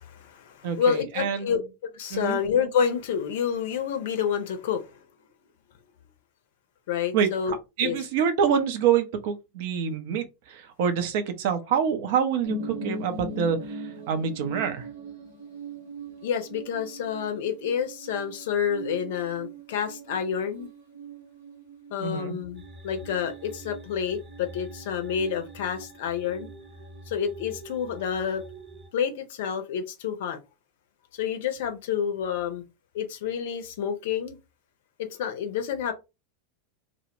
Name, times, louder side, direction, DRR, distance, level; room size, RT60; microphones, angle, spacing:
voice 1, 0.0-1.6 1.9-5.0 6.9-7.5 7.8-8.0 16.2-20.7 21.9-26.5 27.1-28.4 28.9-30.4 31.1-32.6 32.9-34.4 35.0-35.9, left 7 dB, 60° left, 0.5 m, -29 dB
voice 2, 0.6-1.5 2.1-2.4 7.1-14.9 22.0-22.4, right 7 dB, 55° right, 0.5 m, -26 dB
sound 1, 12.4-25.9 26.2-27.0 27.4-27.5, right 2 dB, 75° right, 0.9 m, -40 dB
sound 2, 22.5-28.9, right 1 dB, 25° right, 0.7 m, -46 dB
2.1 x 2.0 x 3.0 m
figure-of-eight pair, 85°, 0 cm